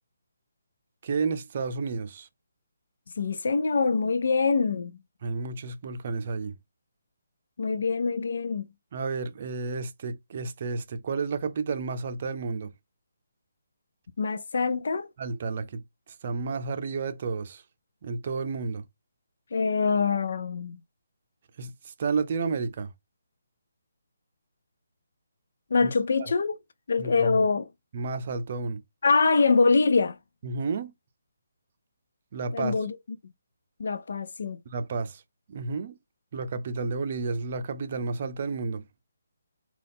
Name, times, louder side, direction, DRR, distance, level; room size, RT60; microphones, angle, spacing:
voice 1, 1.0-2.3 5.2-6.5 8.9-12.7 15.2-15.8 16.2-17.6 18.0-18.8 21.6-22.9 25.8-25.9 27.0-27.4 27.9-28.8 30.4-30.9 32.3-32.7 34.7-35.2 35.5-36.0 36.3-38.9, right 4 dB, 45° right, 0.5 m, -31 dB
voice 2, 3.2-5.0 7.6-8.7 14.2-15.1 19.5-20.8 25.7-26.6 26.9-27.7 29.0-30.2 32.5-33.0 33.8-34.6, left 4 dB, 65° left, 0.4 m, -24 dB
3.7 x 2.3 x 3.7 m
figure-of-eight pair, 150°, 0 cm